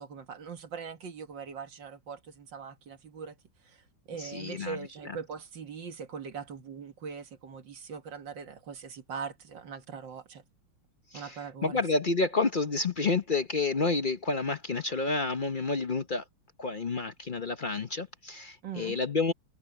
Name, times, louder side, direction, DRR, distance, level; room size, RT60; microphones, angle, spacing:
voice 1, 0.0-3.3 3.6-10.4 11.1-11.8 18.6-19.0, right 6 dB, 65° right, 2.3 m, -41 dB
voice 2, 4.2-4.8 5.0-5.2 11.1-11.3 11.6-16.2 16.6-19.3, left 3 dB, 50° left, 0.6 m, -29 dB
omnidirectional pair, 2.2 m